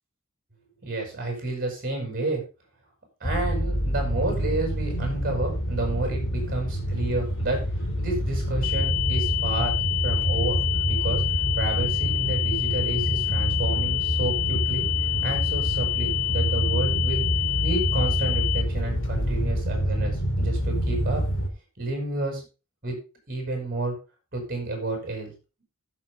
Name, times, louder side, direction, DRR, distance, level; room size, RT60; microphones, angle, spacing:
voice 1, 0.8-2.4 3.2-7.6 8.0-9.7 10.0-10.6 10.8-11.2 11.5-14.9 15.2-17.3 17.6-21.2 21.8-22.4 22.8-23.0 23.3-24.0 24.3-25.3, right 2 dB, 40° right, 2 dB, 7.6 m, -30 dB
sound 1, 3.2-21.5, equal, 60° left, 2.9 m, -27 dB
sound 2, 8.6-18.6, left 15 dB, 90° left, 0.5 m, -28 dB
16.0 x 7.1 x 3.8 m, 0.31 s
head